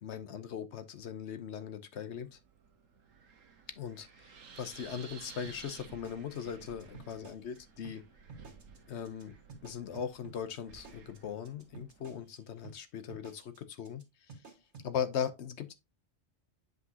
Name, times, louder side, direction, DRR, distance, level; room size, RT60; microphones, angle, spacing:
voice 1, 0.0-2.4 3.8-8.0 8.9-9.3 9.6-14.0 14.8-15.7, left 8 dB, 65° left, 0.9 m, -39 dB
Wind, 2.1-12.2, right 5 dB, 90° right, 1.4 m, -55 dB
sound 1, 5.4-7.6 7.8-8.0 8.3-8.8 9.0-9.2 9.5-12.4 12.6-12.8 13.1-13.6 13.8-14.0 14.3-14.9, right 4 dB, 60° right, 1.8 m, -51 dB
8.1 x 5.1 x 2.7 m
omnidirectional pair, 1.3 m